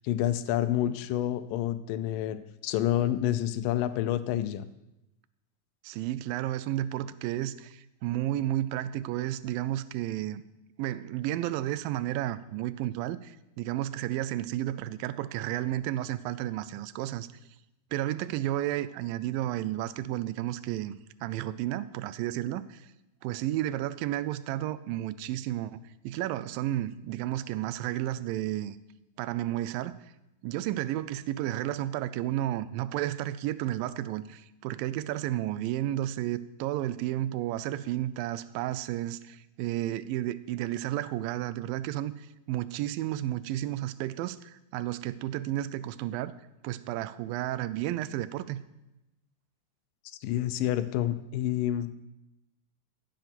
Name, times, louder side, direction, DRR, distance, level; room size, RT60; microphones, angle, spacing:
voice 1, 0.0-4.7 50.2-51.9, left 12 dB, 80° left, 13 dB, 2.3 m, -28 dB
voice 2, 5.8-10.4 10.8-17.3 17.9-22.9 23.2-25.8 26.0-28.8 29.2-30.0 30.4-46.3 46.6-48.6, right 13 dB, 80° right, 16 dB, 2.3 m, -32 dB
15.0 x 7.8 x 6.0 m, 0.91 s
omnidirectional pair, 4.1 m